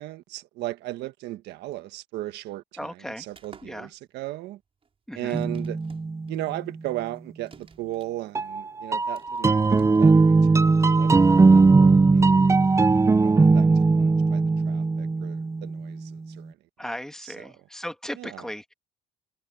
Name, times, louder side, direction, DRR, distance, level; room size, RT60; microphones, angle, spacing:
voice 1, 0.0-4.6 5.1-5.8 6.3-9.5 10.0-12.5 13.2-16.6 17.2-17.5 18.1-18.5, right 16 dB, 80° right, 1.5 m, -36 dB
voice 2, 2.8-3.2 3.6-3.9 5.1-5.4 16.8-18.7, equal, 5° left, 2.1 m, -36 dB
sound 1, 3.3-10.7, right 6 dB, 35° right, 6.5 m, -55 dB
sound 2, 5.3-6.5 8.3-16.0, right 3 dB, 15° right, 0.6 m, -19 dB
cardioid pair, 110°, 17 cm